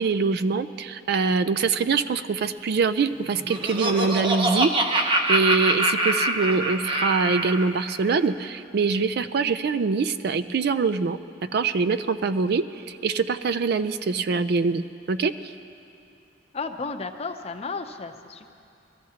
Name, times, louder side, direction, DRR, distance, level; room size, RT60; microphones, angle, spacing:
voice 1, 0.0-14.8 15.1-15.3, right 4 dB, 55° right, 13 dB, 0.4 m, -24 dB
Laughter, 3.2-7.6, right 1 dB, 25° right, 0.8 m, -24 dB
voice 2, 16.5-18.5, left 4 dB, 35° left, 5 dB, 0.6 m, -33 dB
21.5 x 14.0 x 2.8 m, 2.5 s
head